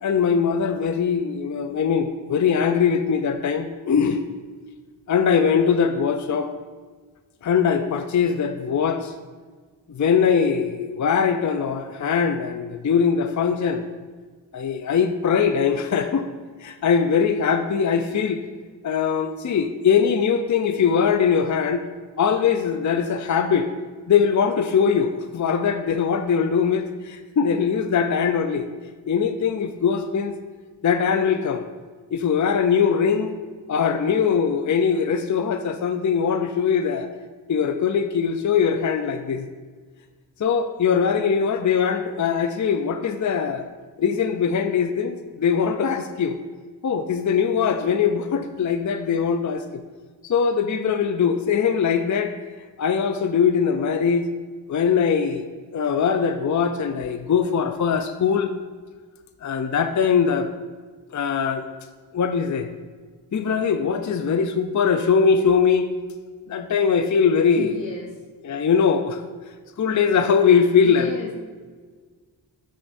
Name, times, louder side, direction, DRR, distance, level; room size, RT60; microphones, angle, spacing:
voice 1, 0.0-4.2 5.1-6.5 7.4-9.1 9.9-13.8 14.5-16.3 16.6-18.4 18.8-21.9 22.2-23.7 24.1-28.7 29.1-30.4 30.8-31.6 32.1-33.3 33.7-37.1 37.5-39.5 40.4-43.7 44.0-46.4 46.8-49.8 50.2-52.4 52.8-54.3 54.7-55.5 55.7-58.5 59.4-60.5 61.1-61.7 62.1-62.7 63.3-65.9 66.5-67.8 68.4-69.2 69.8-71.1, left 6 dB, 40° left, 8 dB, 0.5 m, -21 dB
voice 2, 67.6-68.1 70.8-71.3, left 3 dB, 75° left, -1 dB, 1.1 m, -33 dB
11.0 x 6.4 x 2.6 m, 1.5 s
cardioid pair, 50°, 44 cm